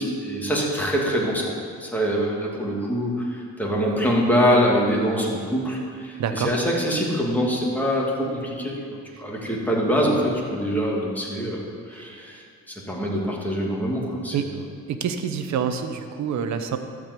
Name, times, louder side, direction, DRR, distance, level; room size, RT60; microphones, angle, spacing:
voice 1, 0.0-1.5 1.8-14.6, equal, 5° left, -3 dB, 2.6 m, -24 dB
voice 2, 6.2-6.5 14.3-14.4 15.0-16.8, right 7 dB, 65° right, 8 dB, 1.0 m, -26 dB
12.5 x 5.1 x 8.3 m, 2.2 s
cardioid pair, 90°, 30 cm